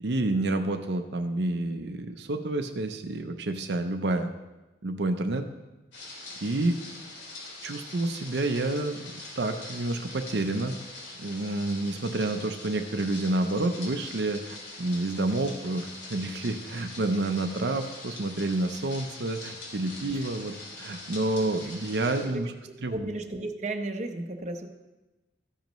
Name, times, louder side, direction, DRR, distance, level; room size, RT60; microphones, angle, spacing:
voice 1, 0.0-4.3 4.8-5.5 6.4-6.8 7.6-10.8 11.2-22.5 22.8-23.1, right 2 dB, 70° right, 6 dB, 0.6 m, -29 dB
sound 1, 5.9-22.3, left 2 dB, 90° left, 3.1 m, -43 dB
voice 2, 22.2-24.7, right 2 dB, 40° right, 5 dB, 0.7 m, -35 dB
13.5 x 10.5 x 3.1 m, 1.1 s
head